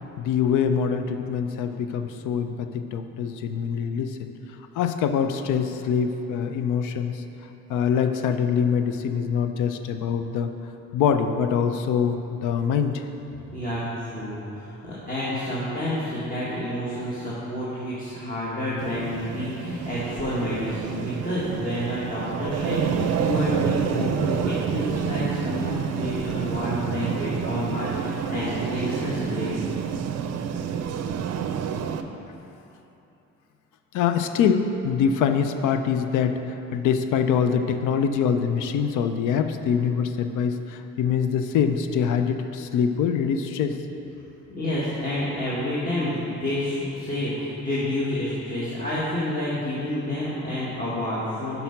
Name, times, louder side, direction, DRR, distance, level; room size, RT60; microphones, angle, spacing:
voice 1, 0.2-4.3 4.7-7.2 7.7-10.5 10.9-13.0 33.9-43.8, left 7 dB, 85° left, 8 dB, 0.5 m, -24 dB
voice 2, 13.5-29.6 44.5-51.6, left 1 dB, 30° left, -9 dB, 1.5 m, -29 dB
sound 1, 18.8-32.0, right 7 dB, 60° right, 0.5 m, -28 dB
5.8 x 5.5 x 5.7 m, 2.9 s
cardioid pair, 90°, 30 cm